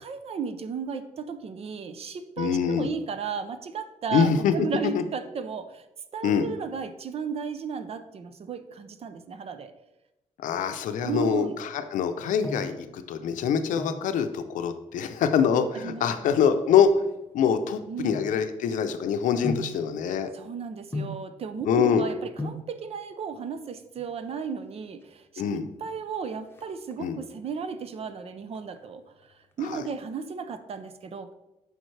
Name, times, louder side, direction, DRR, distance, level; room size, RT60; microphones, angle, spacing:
voice 1, 0.0-5.8 6.1-9.7 11.0-11.5 15.7-16.1 17.9-18.2 20.3-25.2 25.5-29.0 29.6-31.3, right 6 dB, 50° right, 10 dB, 0.6 m, -34 dB
voice 2, 2.4-2.9 4.1-4.7 4.9-5.0 6.2-6.5 10.4-17.0 17.3-20.3 21.7-22.0 25.4-25.7 27.0-27.2 29.6-29.8, left 7 dB, 85° left, 9 dB, 0.6 m, -24 dB
sound 1, 12.4-12.8 13.6-14.1 15.3-15.7 16.4-18.8 19.4-19.8 20.9-21.3 22.1-22.2 22.4-22.7 23.9-24.4 24.7-24.8 25.0-25.2 25.5-25.9 26.2-27.3 27.7-28.1 28.5-29.7 29.9-30.0, left 2 dB, 20° left, 0.9 m, -37 dB
7.8 x 5.1 x 3.3 m, 0.95 s
cardioid pair, 110°, 13 cm